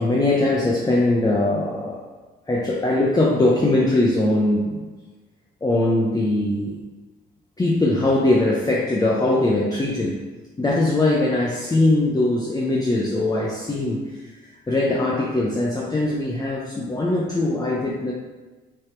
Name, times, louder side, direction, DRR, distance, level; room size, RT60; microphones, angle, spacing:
voice 1, 0.0-2.0 2.5-4.9 5.6-6.8 7.6-10.2 10.6-14.2 14.7-18.1, left 2 dB, 20° left, -3 dB, 0.9 m, -21 dB
6.0 x 4.1 x 4.6 m, 1.3 s
cardioid pair, 90°, 20 cm